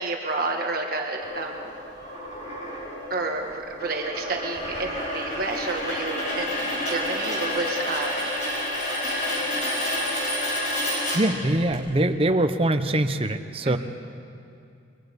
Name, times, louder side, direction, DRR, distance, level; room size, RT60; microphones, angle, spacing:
voice 1, 0.0-1.7 3.1-8.3 13.6-13.8, right 3 dB, 50° right, 1 dB, 1.5 m, -30 dB
sound 1, 1.2-11.8, left 1 dB, 40° left, 5.7 m, -29 dB
voice 2, 11.1-13.8, right 1 dB, 30° right, 7 dB, 0.9 m, -23 dB
27.5 x 23.0 x 5.3 m, 2.5 s
head